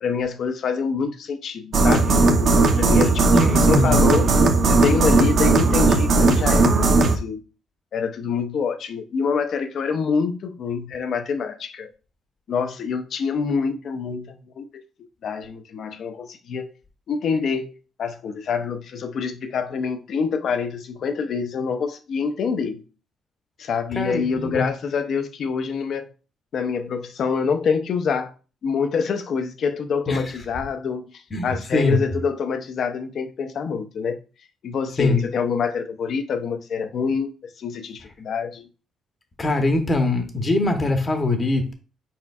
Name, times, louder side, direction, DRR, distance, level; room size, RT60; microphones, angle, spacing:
voice 1, 0.0-4.3 4.7-7.4 7.9-11.9 12.5-14.8 15.2-16.7 17.1-17.7 18.0-22.8 23.6-26.1 26.5-28.3 28.6-34.2 34.6-37.3 37.6-38.7, left 5 dB, 65° left, 0.6 m, -26 dB
sound 1, 1.7-7.2, right 3 dB, 65° right, 0.7 m, -17 dB
voice 2, 3.3-4.0 23.9-24.7 30.1-30.2 31.3-32.0 35.0-35.2 39.4-41.7, left 2 dB, 30° left, 0.9 m, -22 dB
4.4 x 4.3 x 2.3 m
cardioid pair, 90°, 0 cm